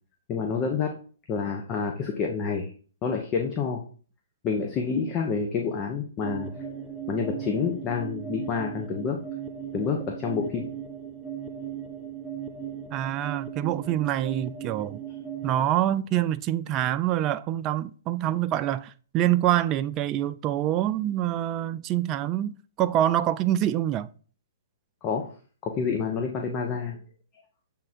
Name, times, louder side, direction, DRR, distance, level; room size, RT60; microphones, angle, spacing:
voice 1, 0.3-0.9 1.3-2.7 3.0-3.8 4.4-6.6 7.1-9.2 9.7-10.6 25.0-25.3 25.6-27.0, left 5 dB, 30° left, 1.0 m, -28 dB
sound 1, 6.2-15.6, right 8 dB, ahead, 0.9 m, -37 dB
voice 2, 12.9-15.0 15.4-24.1, right 12 dB, 30° right, 0.4 m, -26 dB
7.5 x 3.7 x 4.3 m
hypercardioid pair, 135°, 0 cm